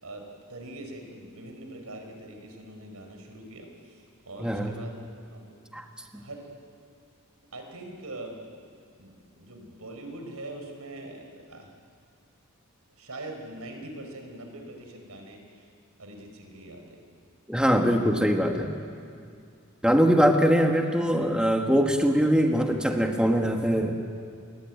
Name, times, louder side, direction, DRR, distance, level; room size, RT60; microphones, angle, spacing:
voice 1, 0.0-5.0 5.3-5.5 6.1-6.5 7.5-8.4 9.0-11.2 11.5-11.7 13.0-15.6 16.0-17.0, right 1 dB, 90° right, 4 dB, 4.9 m, -42 dB
voice 2, 4.4-4.7 5.7-5.8 6.1-6.2 17.5-18.8 19.8-24.0, equal, 5° right, 3 dB, 1.7 m, -22 dB
29.5 x 21.5 x 9.3 m, 2.3 s
head